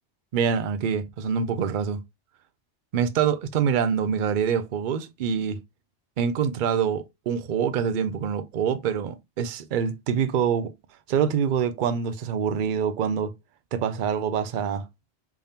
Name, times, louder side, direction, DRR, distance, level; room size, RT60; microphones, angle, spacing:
voice 1, 0.3-2.0 2.9-5.6 6.2-10.7 11.1-13.3 13.7-14.8, right 7 dB, 55° right, 0.6 m, -25 dB
3.6 x 3.4 x 2.7 m
omnidirectional pair, 1.2 m